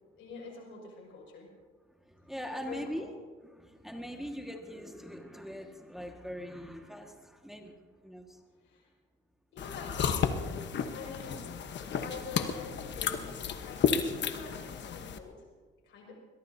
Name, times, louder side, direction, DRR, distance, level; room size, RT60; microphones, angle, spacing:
voice 1, 0.2-1.5 2.7-3.1 8.6-8.9 9.5-11.5 11.8-15.5 15.8-16.1, left 4 dB, 85° left, -1 dB, 6.0 m, -46 dB
voice 2, 2.0-3.1 3.4-8.4, equal, ahead, 2 dB, 1.8 m, -42 dB
sound 1, 9.6-15.2, left 7 dB, 65° left, 1.2 m, -32 dB
22.0 x 22.0 x 2.8 m, 1.5 s
cardioid pair, 90°, 20 cm